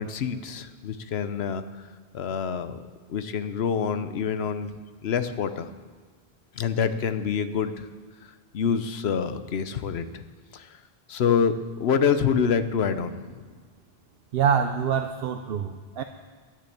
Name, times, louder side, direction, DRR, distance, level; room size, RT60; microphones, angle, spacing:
voice 1, 0.0-1.6 2.1-2.8 3.1-4.7 5.0-5.7 6.5-7.9 8.5-10.2 10.5-10.8 11.1-11.5 11.8-13.5, left 7 dB, 80° left, 11 dB, 1.0 m, -26 dB
voice 2, 14.3-16.0, right 7 dB, 70° right, 6 dB, 0.8 m, -25 dB
10.5 x 10.0 x 8.5 m, 1.5 s
omnidirectional pair, 1.1 m